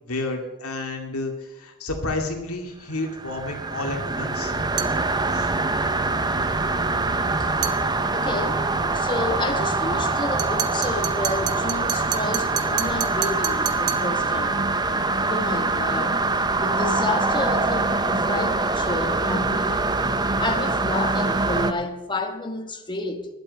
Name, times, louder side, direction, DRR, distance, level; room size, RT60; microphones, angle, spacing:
voice 1, 0.1-4.5 5.3-5.5 10.9-11.0, left 2 dB, 75° left, 2.1 m, -31 dB
sound 1, 3.0-21.7, right 3 dB, 20° right, 0.6 m, -24 dB
sound 2, 4.8-5.0 7.6-7.8 10.4-14.1, right 13 dB, 80° right, 0.9 m, -30 dB
voice 2, 8.1-8.6 8.9-14.6 15.3-16.2 16.6-19.9 20.4-23.3, left 2 dB, 20° left, 1.2 m, -30 dB
12.0 x 8.1 x 8.0 m
head